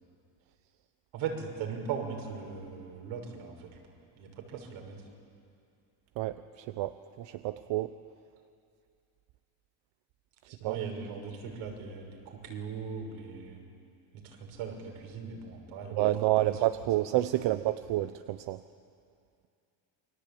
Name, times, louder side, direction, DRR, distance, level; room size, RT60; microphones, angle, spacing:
voice 1, 1.1-3.7 4.2-5.0 10.5-13.6 14.1-16.0 16.4-16.6 17.5-17.6, right 6 dB, 80° right, 2 dB, 6.2 m, -39 dB
voice 2, 6.2-8.0 10.6-10.8 15.9-18.6, right 15 dB, 65° right, 11 dB, 0.9 m, -29 dB
29.0 x 22.5 x 8.7 m, 2.4 s
cardioid pair, 110°, 48 cm